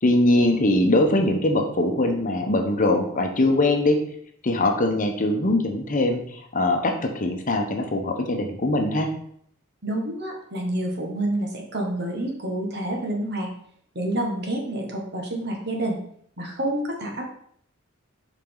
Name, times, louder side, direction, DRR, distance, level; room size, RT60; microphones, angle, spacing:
voice 1, 0.0-4.0 4.4-9.1, left 1 dB, 40° left, 4 dB, 0.9 m, -22 dB
voice 2, 9.8-13.5 13.9-16.0 16.4-17.3, right 1 dB, 55° right, 1 dB, 1.6 m, -28 dB
7.4 x 5.0 x 3.9 m, 0.66 s
head